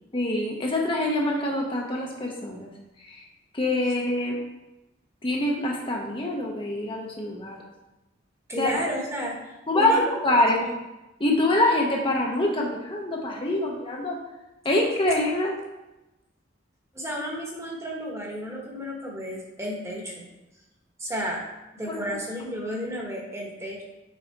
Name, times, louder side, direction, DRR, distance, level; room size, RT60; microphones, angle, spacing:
voice 1, 0.1-2.7 3.1-3.2 3.5-4.4 5.2-7.6 8.6-8.7 9.7-10.6 11.2-14.2 14.6-15.5 21.9-22.0, left 1 dB, 25° left, -1 dB, 0.7 m, -25 dB
voice 2, 8.5-9.4 9.7-10.0 10.5-10.7 16.9-20.3 21.0-21.4 21.7-23.8, equal, 15° right, -2 dB, 1.2 m, -32 dB
6.4 x 4.0 x 4.5 m, 0.99 s
head